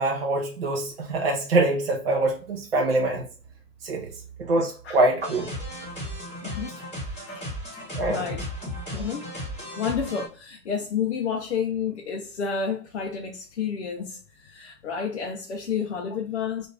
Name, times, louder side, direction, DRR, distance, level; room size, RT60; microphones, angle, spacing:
voice 1, 0.0-3.2 3.8-4.1 4.4-5.5 8.0-8.3, right 2 dB, 40° right, 0.5 m, -24 dB
sound 1, 5.2-10.3, equal, 5° left, 0.6 m, -35 dB
voice 2, 7.9-8.5 8.9-9.3 9.6-16.7, left 6 dB, 50° left, 0.4 m, -30 dB
2.5 x 2.3 x 3.1 m
hypercardioid pair, 155°, 48 cm